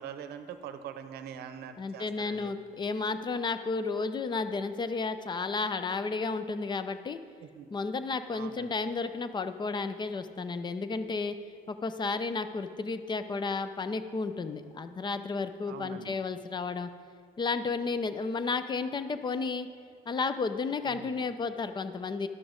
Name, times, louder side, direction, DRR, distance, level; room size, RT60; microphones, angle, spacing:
voice 1, 0.0-2.5 7.4-7.7 8.3-8.7 15.7-16.2 20.8-21.2, right 8 dB, 75° right, 9 dB, 0.7 m, -43 dB
voice 2, 1.8-7.2 7.7-11.4 11.7-16.9 17.4-19.7 20.1-22.3, left 4 dB, 25° left, 11 dB, 0.5 m, -32 dB
11.0 x 6.0 x 5.0 m, 2.2 s
cardioid pair, 110°, 17 cm